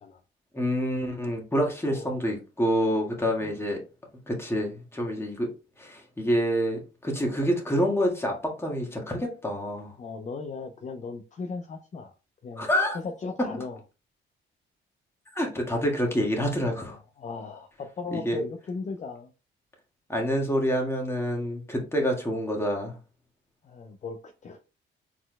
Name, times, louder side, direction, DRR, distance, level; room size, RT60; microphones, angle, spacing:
voice 1, 0.5-3.8 4.3-5.5 5.8-10.0 12.6-13.0 15.3-17.0 18.1-18.4 20.1-23.0, equal, 10° left, 1.6 m, -27 dB
voice 2, 10.0-12.1 12.4-12.6 12.9-13.8 16.8-19.3 23.6-24.6, left 4 dB, 35° left, 0.6 m, -37 dB
4.4 x 4.0 x 2.2 m
cardioid pair, 90°, 20 cm